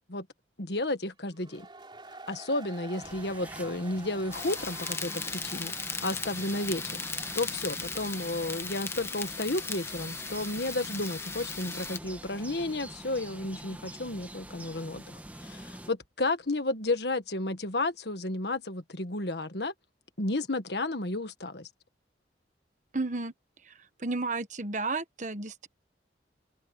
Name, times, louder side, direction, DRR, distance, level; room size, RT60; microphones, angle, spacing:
voice 1, 0.6-1.7 2.3-5.7 6.0-7.0 7.3-19.7 20.2-21.7, left 2 dB, 65° left, 1.6 m, -32 dB
sound 1, 1.3-13.0, right 3 dB, 25° right, 4.1 m, -50 dB
sound 2, 3.0-15.9, right 1 dB, 10° right, 1.4 m, -46 dB
sound 3, 4.3-12.0, left 4 dB, 15° left, 1.1 m, -37 dB
voice 2, 22.9-23.3 24.0-25.7, right 3 dB, 45° right, 1.2 m, -32 dB
open air
head